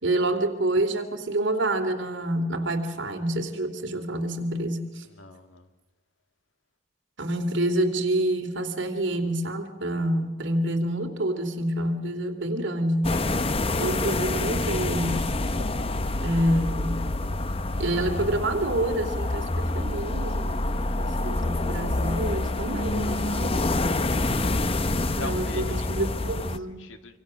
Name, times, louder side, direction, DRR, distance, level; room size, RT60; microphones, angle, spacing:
voice 1, 0.0-5.0 7.2-13.1 13.8-15.3 16.2-17.1 17.8-23.6 25.2-26.8, right 1 dB, 60° right, 5 dB, 2.7 m, -27 dB
voice 2, 5.0-5.7 16.5-16.7 25.1-26.2 26.7-27.2, left 2 dB, 75° left, 7 dB, 2.0 m, -42 dB
sound 1, 13.0-26.6, left 2 dB, 30° left, 0.8 m, -27 dB
25.5 x 24.5 x 6.3 m, 1.1 s
head